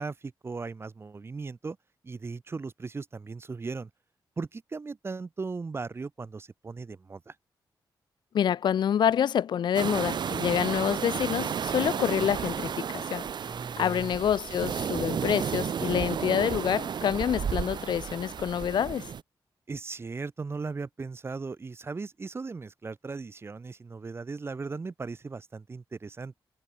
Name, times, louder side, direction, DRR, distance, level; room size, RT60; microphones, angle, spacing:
voice 1, 0.0-1.8 2.0-3.9 4.4-7.3 13.4-14.1 19.7-26.4, right 4 dB, 30° right, 1.2 m, -37 dB
voice 2, 8.3-13.2 13.8-19.1, left 9 dB, 65° left, 0.4 m, -27 dB
sound 1, 9.7-19.2, right 7 dB, 65° right, 1.8 m, -32 dB
wide cardioid pair, 150°, 8 cm